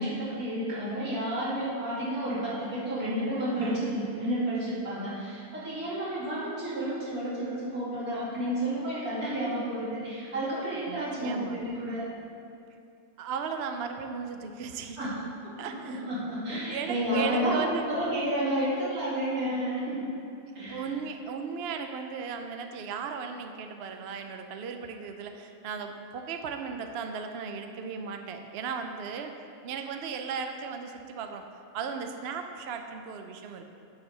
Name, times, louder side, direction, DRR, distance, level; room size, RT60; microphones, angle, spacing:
voice 1, 0.0-12.1 15.0-20.1 20.5-20.9, right 1 dB, 85° right, -9 dB, 2.9 m, -31 dB
voice 2, 10.9-11.6 13.2-15.0 15.6-16.1 16.7-17.8 20.7-29.3 29.6-31.5 31.7-33.7, right 6 dB, 60° right, 6 dB, 0.7 m, -36 dB
9.1 x 4.5 x 6.7 m, 2.5 s
omnidirectional pair, 1.5 m